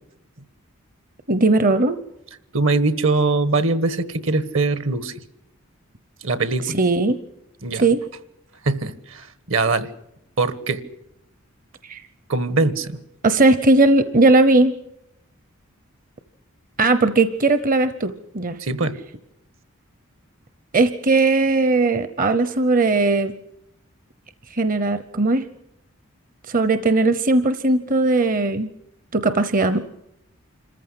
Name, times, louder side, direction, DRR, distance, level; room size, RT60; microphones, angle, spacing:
voice 1, 1.3-2.0 6.7-7.2 7.8-8.0 11.8-12.0 13.2-14.8 16.8-18.6 20.7-23.3 24.5-25.5 26.5-28.7 29.1-29.8, right 2 dB, 40° right, 12 dB, 0.8 m, -18 dB
voice 2, 2.5-5.2 6.2-6.8 7.6-7.8 8.6-9.9 10.4-10.8 12.3-13.0 18.6-19.0, right 3 dB, 65° right, 15 dB, 1.4 m, -22 dB
26.5 x 14.5 x 9.8 m, 0.82 s
head